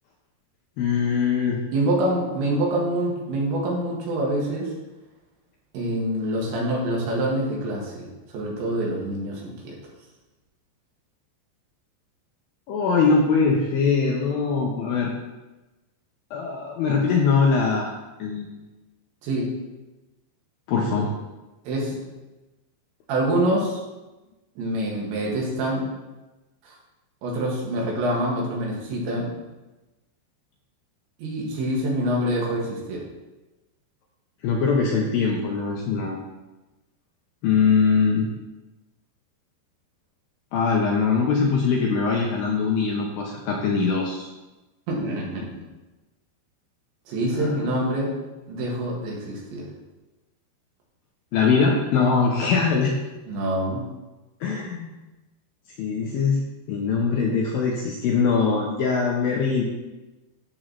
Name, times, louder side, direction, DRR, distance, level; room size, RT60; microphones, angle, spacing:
voice 1, 0.8-1.6 12.7-15.1 16.3-17.9 18.2-18.6 20.7-21.1 34.4-36.2 37.4-38.3 40.5-44.3 47.3-47.7 51.3-52.9 54.4-54.9 55.8-59.6, left 5 dB, 80° left, -1 dB, 2.1 m, -22 dB
voice 2, 1.7-4.7 5.7-8.1 8.3-9.8 19.2-19.5 20.9-21.1 21.7-22.0 23.1-23.8 24.6-25.9 26.6-26.7 27.2-29.3 31.2-33.0 44.9-45.6 47.1-48.1 48.5-49.7 53.3-53.8, right 1 dB, 90° right, -3 dB, 4.0 m, -26 dB
12.5 x 6.4 x 3.1 m, 1.1 s
omnidirectional pair, 5.1 m